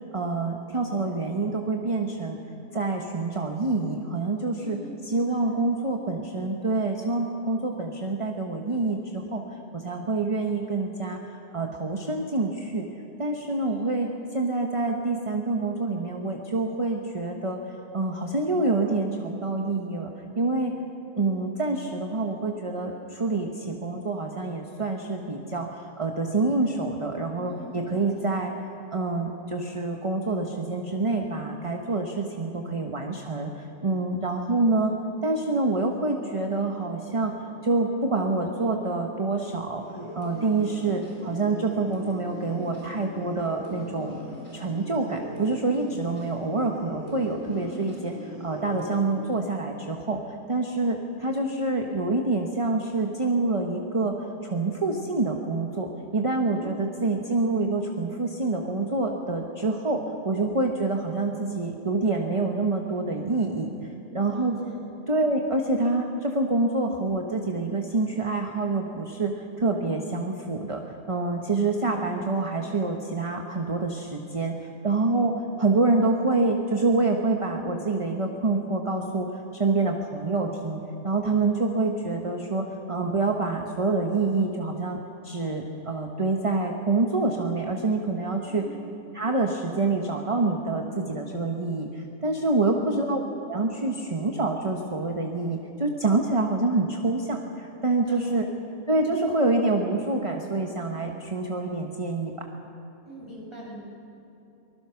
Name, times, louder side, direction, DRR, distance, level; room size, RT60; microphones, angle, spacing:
voice 1, 0.1-2.4 2.7-4.8 5.0-9.4 9.7-11.2 11.5-12.8 13.2-17.6 17.9-20.1 20.4-20.7 21.2-28.5 28.9-34.9 35.2-37.3 37.6-39.8 40.1-44.2 44.5-50.2 50.5-54.2 54.4-63.7 64.1-64.5 65.1-70.8 71.1-75.3 75.6-79.3 79.5-85.0 85.2-88.6 89.1-93.2 93.5-98.5 98.9-102.3, right 3 dB, 25° right, 2 dB, 1.2 m, -26 dB
voice 2, 4.6-4.9 5.3-5.5 13.6-14.0 27.5-28.0 47.5-47.8 56.4-56.7 64.3-64.8 88.4-88.7 92.5-93.0 98.0-98.7 103.0-103.8, equal, 20° left, -4 dB, 6.5 m, -43 dB
sound 1, 39.8-49.1, equal, 85° left, 6.4 m, -40 dB
24.0 x 20.5 x 5.9 m, 3.0 s
omnidirectional pair, 1.5 m